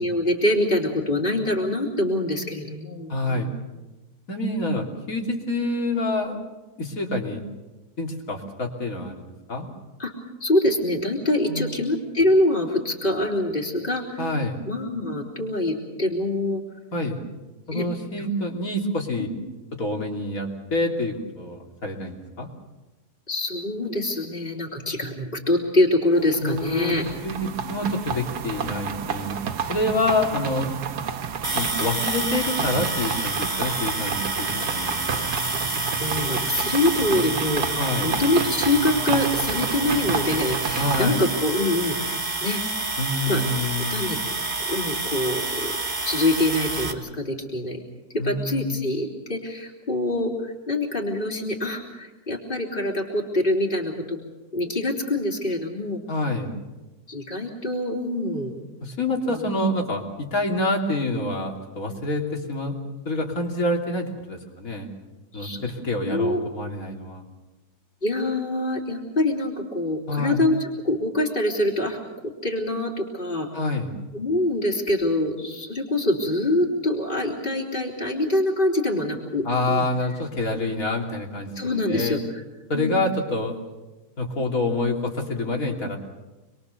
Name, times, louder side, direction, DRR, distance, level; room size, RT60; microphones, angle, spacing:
voice 1, 0.0-3.6 10.0-10.1 10.4-14.2 14.7-16.6 17.7-17.8 18.2-18.3 23.3-27.0 36.0-42.6 43.3-43.4 43.8-44.2 44.7-45.8 46.0-47.8 48.1-54.2 54.5-56.0 57.1-58.5 59.3-59.5 65.3-65.6 66.0-66.4 68.0-73.5 74.1-79.9 81.6-82.4 82.7-82.9, left 1 dB, 30° left, 0 dB, 3.6 m, -25 dB
voice 2, 3.1-3.5 4.3-6.4 6.8-7.4 8.0-9.7 11.5-11.8 14.2-14.6 16.9-17.2 17.7-19.3 19.7-22.5 26.4-27.0 27.2-29.4 29.7-30.8 31.5-35.3 37.7-38.1 40.8-41.2 43.0-44.1 48.2-48.7 56.1-56.5 58.8-62.8 63.1-64.9 65.3-67.3 70.1-70.4 73.5-73.9 79.4-82.2 82.7-83.5 84.2-86.0, left 2 dB, 55° left, 1 dB, 3.4 m, -27 dB
sound 1, 26.1-41.1, right 6 dB, 75° right, 1.6 m, -31 dB
sound 2, 31.4-46.9, right 2 dB, 30° right, 1.9 m, -28 dB
27.0 x 22.0 x 6.9 m, 1.1 s
omnidirectional pair, 1.7 m